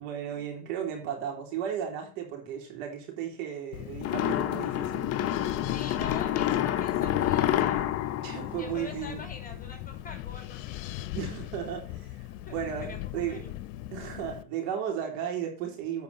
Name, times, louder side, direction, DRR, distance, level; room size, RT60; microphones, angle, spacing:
voice 1, 0.0-5.1 8.2-9.2 11.1-13.5 13.9-16.0, right 9 dB, 65° right, 3.9 m, -35 dB
Wind, 3.7-14.4, left 14 dB, 65° left, 0.9 m, -39 dB
sound 1, 4.0-9.4, left 11 dB, 35° left, 0.8 m, -28 dB
voice 2, 5.7-10.8 12.5-13.0 13.3-13.5, left 4 dB, 20° left, 3.0 m, -44 dB
8.6 x 5.6 x 5.5 m
hypercardioid pair, 90°, 41 cm